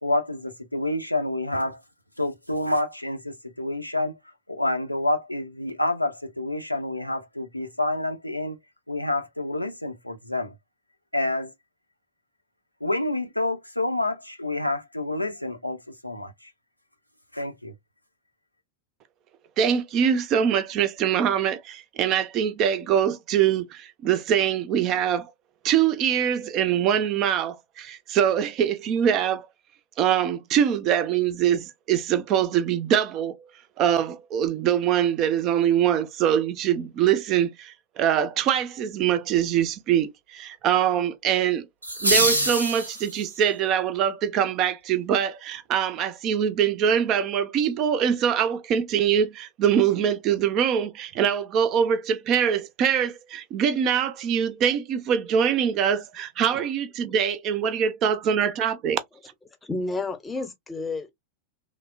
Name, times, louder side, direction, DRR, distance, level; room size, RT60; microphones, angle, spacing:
voice 1, 0.0-1.8 2.2-4.1 4.5-8.6 8.9-10.5 11.1-11.5 12.8-16.3 17.3-17.7, left 1 dB, 90° left, 0.5 m, -28 dB
voice 2, 19.6-25.3 25.6-29.5 30.0-33.4 33.8-41.6 42.0-59.0, right 9 dB, 35° right, 0.4 m, -23 dB
sound 1, 41.8-43.4, right 1 dB, 85° right, 0.7 m, -24 dB
voice 3, 59.6-61.1, left 3 dB, 10° left, 0.7 m, -31 dB
3.1 x 2.0 x 2.3 m
figure-of-eight pair, 90°, 0 cm